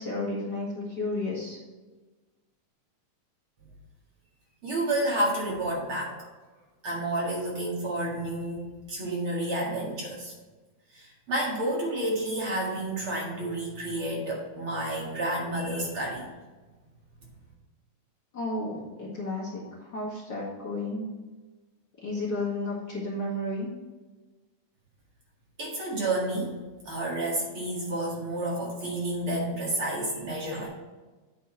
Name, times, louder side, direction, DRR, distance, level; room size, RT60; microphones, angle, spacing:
voice 1, 0.0-1.6 18.3-21.1 22.0-23.7, left 2 dB, 35° left, -6 dB, 2.2 m, -32 dB
voice 2, 4.6-6.3 6.8-10.3 10.9-16.3 25.6-26.5 26.9-30.7, right 1 dB, 50° right, -4 dB, 2.6 m, -30 dB
9.0 x 5.5 x 3.9 m, 1.3 s
omnidirectional pair, 3.3 m